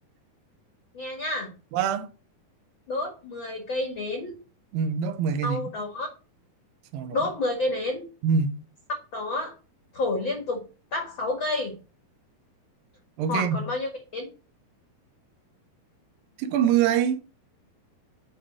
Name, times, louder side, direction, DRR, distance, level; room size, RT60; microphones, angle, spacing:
voice 1, 0.9-1.5 2.9-4.3 5.4-6.1 7.1-8.0 9.1-9.5 9.9-10.6 10.9-11.7 13.3-14.3, left 2 dB, 50° left, 1.5 m, -29 dB
voice 2, 1.7-2.1 4.7-5.6 6.9-7.3 8.2-8.5 13.2-13.6 16.4-17.2, right 7 dB, 70° right, 2.4 m, -24 dB
8.9 x 3.6 x 6.3 m
omnidirectional pair, 4.6 m